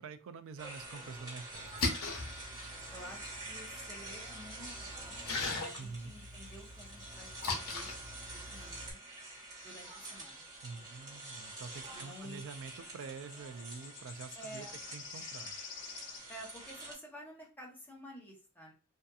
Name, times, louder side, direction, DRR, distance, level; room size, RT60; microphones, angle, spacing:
voice 1, 0.0-1.7 5.8-6.1 10.6-14.7 14.9-15.6, right 5 dB, 60° right, 10 dB, 0.3 m, -46 dB
sound 1, 0.6-16.9, right 2 dB, 20° right, 1.1 m, -47 dB
Splash splatter, 1.5-8.9, left 3 dB, 90° left, 0.8 m, -41 dB
voice 2, 2.9-5.2 5.6-7.9 8.3-9.0 9.6-10.5 11.9-12.4 14.3-14.8 16.3-18.7, equal, 10° left, -2 dB, 0.8 m, -51 dB
sound 2, 8.5-8.7 12.5-16.3, left 6 dB, 60° left, 0.6 m, -49 dB
2.7 x 2.4 x 2.3 m, 0.36 s
head